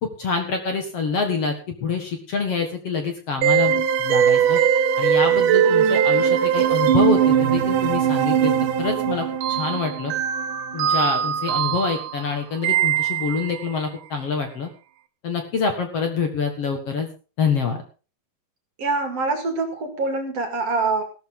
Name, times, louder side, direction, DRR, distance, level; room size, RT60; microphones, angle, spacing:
voice 1, 0.0-4.6 5.0-8.5 8.8-10.1 10.7-14.7 15.2-17.1 17.4-17.8, left 5 dB, 50° left, 4 dB, 2.3 m, -26 dB
sound 1, 3.4-13.6, right 9 dB, 75° right, 2.4 m, -20 dB
voice 2, 18.8-21.0, right 3 dB, 50° right, 5 dB, 2.9 m, -24 dB
16.0 x 13.0 x 3.8 m, 0.35 s
omnidirectional pair, 4.0 m